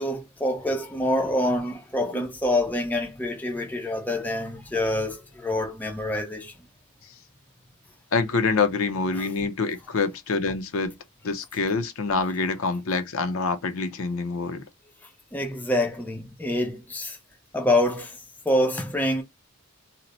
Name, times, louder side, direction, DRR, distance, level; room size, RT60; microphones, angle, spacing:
voice 1, 0.0-6.5 9.1-9.3 15.3-17.2 17.5-18.2 18.5-19.2, left 1 dB, 10° left, 0.4 m, -26 dB
voice 2, 8.1-10.9 11.2-14.6, left 4 dB, 65° left, 0.6 m, -26 dB
2.8 x 2.1 x 3.9 m
head